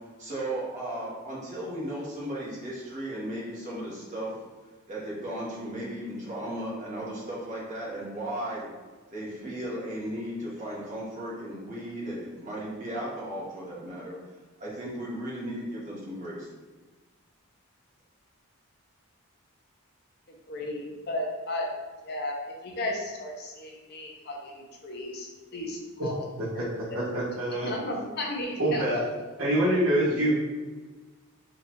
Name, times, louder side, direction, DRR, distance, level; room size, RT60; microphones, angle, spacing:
voice 1, 0.2-4.3 4.9-8.7 9.1-14.2 14.6-16.5, right 1 dB, 35° right, -6 dB, 1.2 m, -35 dB
voice 2, 20.5-21.7 22.0-22.4 22.6-26.2 26.6-26.7 27.6-29.0, left 1 dB, 50° left, 0 dB, 0.6 m, -34 dB
voice 3, 26.4-27.7 28.6-29.0 29.4-30.5, right 1 dB, 75° right, -6 dB, 1.4 m, -26 dB
3.9 x 3.2 x 2.9 m, 1.3 s
head